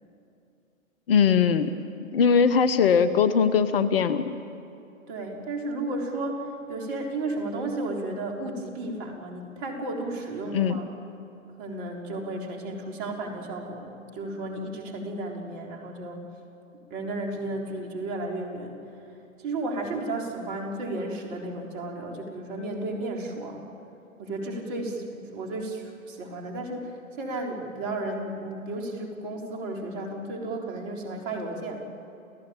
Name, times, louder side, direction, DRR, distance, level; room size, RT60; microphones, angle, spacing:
voice 1, 1.1-1.7 2.1-4.3 10.5-10.8, left 6 dB, 45° left, 12 dB, 1.1 m, -20 dB
voice 2, 5.1-10.9 11.6-16.2 16.9-18.8 19.4-23.7 24.2-31.8, right 2 dB, 40° right, 1 dB, 4.2 m, -33 dB
30.0 x 16.0 x 8.9 m, 2.7 s
figure-of-eight pair, 120°, 41 cm